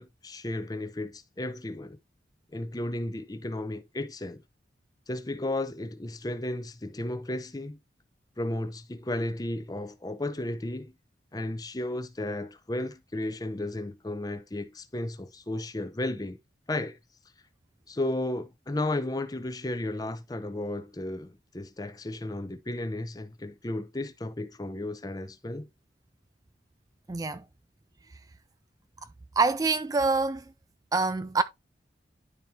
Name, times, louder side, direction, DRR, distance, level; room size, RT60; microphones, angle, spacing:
voice 1, 0.0-2.0 2.5-4.4 5.1-7.8 8.4-10.9 11.3-16.4 16.7-17.0 17.9-25.7, left 1 dB, 20° left, 0.6 m, -34 dB
voice 2, 27.1-27.4 29.4-30.4 30.9-31.4, right 3 dB, 20° right, 0.3 m, -25 dB
11.0 x 4.3 x 2.8 m
head